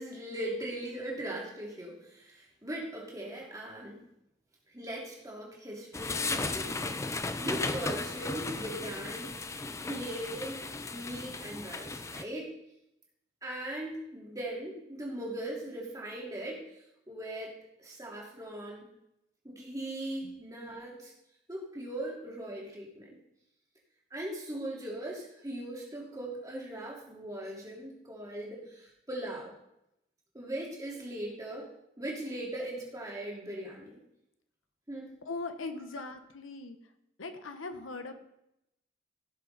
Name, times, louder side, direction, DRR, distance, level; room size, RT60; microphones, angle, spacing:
voice 1, 0.0-4.0 4.7-6.8 7.4-12.5 13.4-16.6 17.1-17.5 17.8-18.9 19.4-21.1 21.5-23.2 24.1-29.5 30.3-31.7 32.0-34.0 34.9-35.2, right 1 dB, 15° right, -3 dB, 2.4 m, -39 dB
sound 1, 5.9-12.2, left 3 dB, 15° left, 0.4 m, -35 dB
voice 2, 35.3-36.8 37.2-38.1, left 3 dB, 85° left, 8 dB, 1.0 m, -40 dB
16.0 x 6.6 x 4.0 m, 0.83 s
head